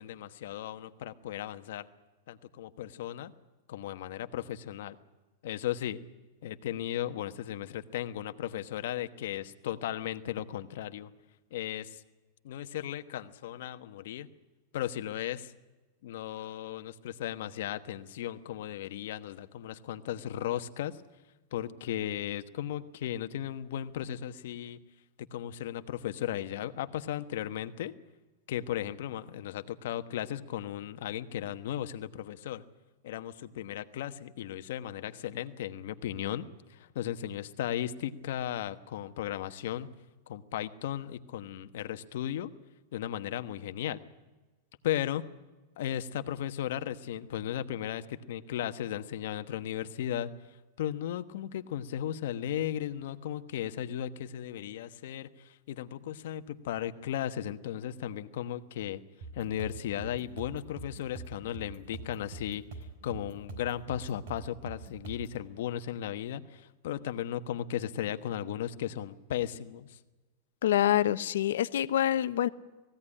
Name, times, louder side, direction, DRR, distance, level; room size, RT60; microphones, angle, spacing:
voice 1, 0.0-1.9 2.3-3.3 3.7-5.0 5.4-6.0 6.4-11.1 11.5-12.0 12.4-14.3 14.7-15.5 16.0-21.0 21.5-24.8 25.2-27.9 28.5-32.6 33.0-39.9 40.3-42.5 42.9-44.0 44.8-45.2 45.8-59.0 59.3-62.6 63.0-70.0, left 11 dB, 60° left, 10 dB, 1.1 m, -36 dB
sound 1, 59.2-65.4, right 3 dB, 55° right, 5.2 m, -44 dB
voice 2, 70.6-72.5, left 12 dB, 85° left, 14 dB, 0.9 m, -26 dB
19.5 x 16.0 x 9.9 m, 1.2 s
supercardioid pair, 175°, 0 cm